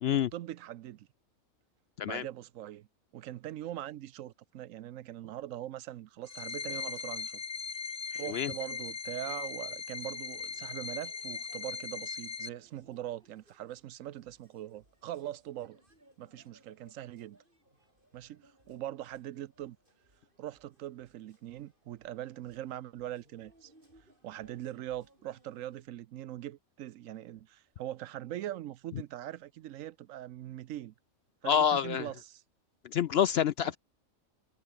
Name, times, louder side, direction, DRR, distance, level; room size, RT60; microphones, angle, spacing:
voice 1, 0.1-1.1 2.0-2.9 3.1-7.4 8.1-15.8 16.2-17.4 18.1-19.8 20.4-23.7 24.2-30.9 31.4-32.4, right 13 dB, 75° right, 1.0 m, -42 dB
sound 1, 6.2-12.5, left 5 dB, 45° left, 1.5 m, -39 dB
sound 2, 6.2-25.9, right 1 dB, 40° right, 7.3 m, -66 dB
voice 2, 8.1-8.5 31.4-32.1 32.8-33.8, left 9 dB, 65° left, 0.7 m, -27 dB
omnidirectional pair, 1.4 m